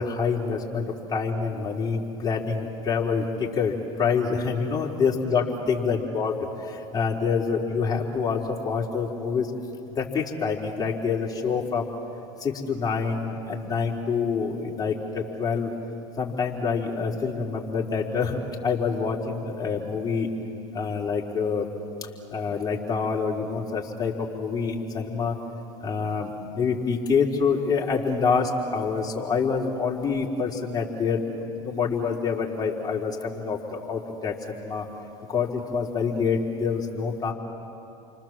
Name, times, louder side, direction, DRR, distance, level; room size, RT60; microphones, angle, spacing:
voice 1, 0.0-6.3 6.6-9.5 9.9-12.0 12.4-15.7 16.2-20.3 20.7-21.7 22.0-25.4 25.8-34.9 35.3-37.3, left 5 dB, 25° left, -2 dB, 4.1 m, -26 dB
29.5 x 25.0 x 7.6 m, 2.8 s
hypercardioid pair, 100°, 17 cm